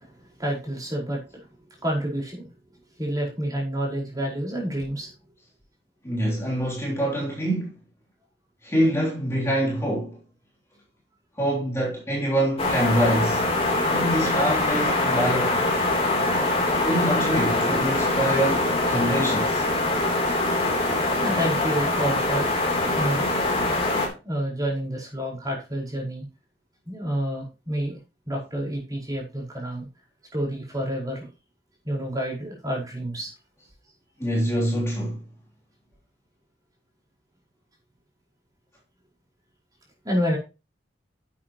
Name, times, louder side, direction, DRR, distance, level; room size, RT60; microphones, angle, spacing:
voice 1, 0.4-1.2 1.8-2.5 3.0-5.1 21.2-22.5 22.9-23.4 24.2-26.2 26.8-28.0 28.2-29.9 30.3-31.3 31.8-33.3 40.0-40.4, equal, 20° right, 4.9 m, -28 dB
voice 2, 6.0-7.8 8.6-10.2 11.4-13.4 13.9-15.6 16.8-19.7 34.2-35.2, right 1 dB, 15° left, 3.3 m, -25 dB
sound 1, 12.6-24.1, left 2 dB, 35° left, 3.4 m, -23 dB
11.0 x 8.5 x 3.0 m
head